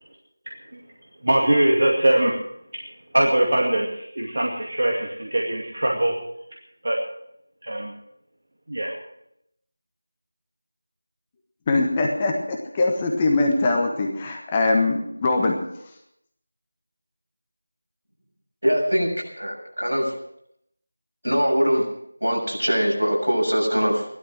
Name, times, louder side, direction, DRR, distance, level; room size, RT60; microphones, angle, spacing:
voice 1, 1.2-2.4 2.7-2.8 3.1-6.2 6.8-7.0 7.6-7.9 8.7-8.9, right 1 dB, 50° right, -1 dB, 2.3 m, -22 dB
voice 2, 11.7-15.6, left 2 dB, 15° left, 2 dB, 1.3 m, -22 dB
voice 3, 18.6-19.1 19.4-20.1 21.2-21.8 22.2-24.1, equal, 80° right, -1 dB, 7.0 m, -22 dB
16.0 x 12.5 x 6.3 m, 0.76 s
figure-of-eight pair, 170°, 0 cm